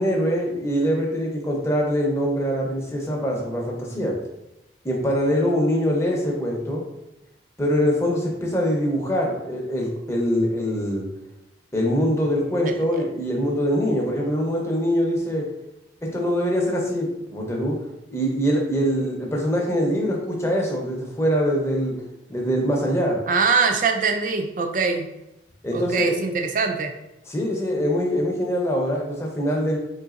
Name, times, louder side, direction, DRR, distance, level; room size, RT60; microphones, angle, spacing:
voice 1, 0.0-4.1 4.8-6.8 7.6-11.1 11.7-15.4 16.1-17.8 18.1-21.9 22.3-23.2 25.6-26.1 27.3-29.8, equal, 15° left, -1 dB, 0.7 m, -23 dB
voice 2, 12.6-13.1 23.3-25.1 25.7-26.9, right 4 dB, 45° right, 5 dB, 0.4 m, -23 dB
3.9 x 3.7 x 2.4 m, 0.92 s
head